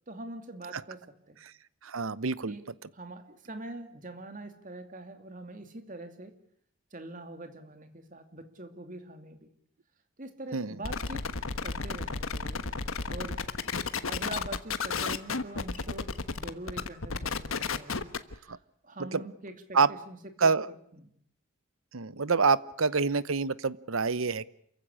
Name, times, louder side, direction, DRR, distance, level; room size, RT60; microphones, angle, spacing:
voice 1, 0.1-1.4 2.4-2.6 2.9-6.3 6.9-9.5 10.2-11.3 11.6-13.4 14.1-20.5 20.9-21.1, right 2 dB, 40° right, 7 dB, 2.7 m, -44 dB
voice 2, 1.8-2.6 10.5-10.7 18.5-18.6 19.1-19.2 19.7-19.9 20.4-20.7 21.9-24.5, right 4 dB, 85° right, 17 dB, 0.9 m, -26 dB
sound 1, 10.8-18.3, left 4 dB, 85° left, 1.3 m, -33 dB
28.0 x 15.5 x 10.0 m, 0.68 s
head